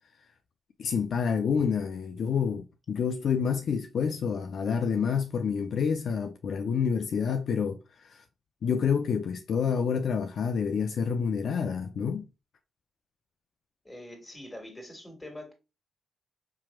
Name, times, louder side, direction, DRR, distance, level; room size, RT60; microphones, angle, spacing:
voice 1, 0.8-8.2 8.6-12.3, left 6 dB, 60° left, 0.4 m, -28 dB
voice 2, 13.8-15.5, left 1 dB, 15° left, 1.8 m, -44 dB
4.7 x 2.9 x 2.3 m
hypercardioid pair, 50°, 0 cm